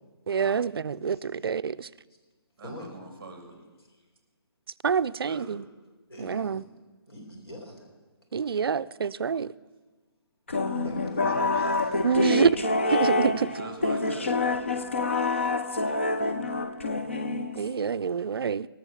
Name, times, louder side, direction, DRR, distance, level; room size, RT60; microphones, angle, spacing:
voice 1, 0.3-1.9 4.8-5.6 6.2-6.6 8.3-9.5 12.0-12.6 12.9-13.5 17.6-18.7, right 6 dB, 65° right, 0.4 m, -26 dB
voice 2, 1.1-1.5 2.6-2.9 3.9-4.0 6.1-6.6 7.1-7.9 10.7-12.0 15.8-15.9 16.3-16.8 17.1-17.2 17.8-18.0, left 1 dB, 65° left, 3.9 m, -45 dB
voice 3, 2.6-3.7 5.1-5.6 13.2-14.4, right 3 dB, 15° right, 1.7 m, -42 dB
sound 1, 10.5-17.9, left 3 dB, 30° left, 0.4 m, -27 dB
18.5 x 6.4 x 7.0 m
hypercardioid pair, 180°, 14 cm